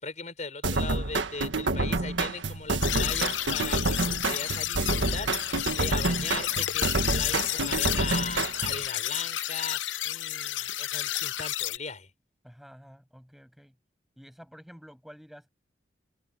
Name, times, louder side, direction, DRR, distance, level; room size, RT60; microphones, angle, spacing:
voice 1, 0.0-9.8 10.0-12.1, left 4 dB, 40° left, 5.8 m, -38 dB
sound 1, 0.6-8.9, right 2 dB, 80° right, 1.6 m, -28 dB
sound 2, 2.8-11.8, left 13 dB, 90° left, 0.7 m, -31 dB
voice 2, 12.4-13.8 14.2-15.5, equal, ahead, 7.0 m, -50 dB
open air
head